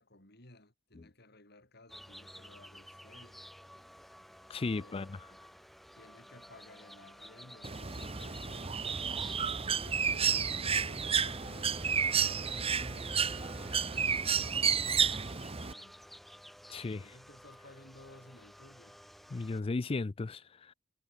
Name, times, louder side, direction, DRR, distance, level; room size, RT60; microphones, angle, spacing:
voice 1, 0.0-3.4 4.7-5.4 5.9-16.1 17.0-19.0, left 1 dB, 60° left, 6.2 m, -57 dB
sound 1, 1.9-19.6, equal, ahead, 1.8 m, -53 dB
voice 2, 4.5-5.2 16.7-17.1 19.3-20.7, left 3 dB, 30° left, 0.4 m, -35 dB
Bird, 7.6-15.7, right 6 dB, 30° right, 1.2 m, -31 dB
head